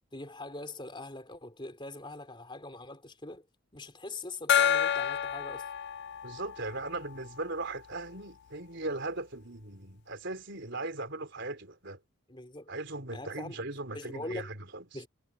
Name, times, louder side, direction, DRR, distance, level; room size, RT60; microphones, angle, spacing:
voice 1, 0.1-3.5 3.7-5.7 12.3-12.7 13.1-13.6 13.9-14.5 14.9-15.1, left 2 dB, 20° left, 3.8 m, -42 dB
Gong, 4.5-7.8, left 8 dB, 50° left, 0.3 m, -29 dB
voice 2, 6.2-12.0 12.7-14.8, right 2 dB, 55° right, 4.1 m, -38 dB
head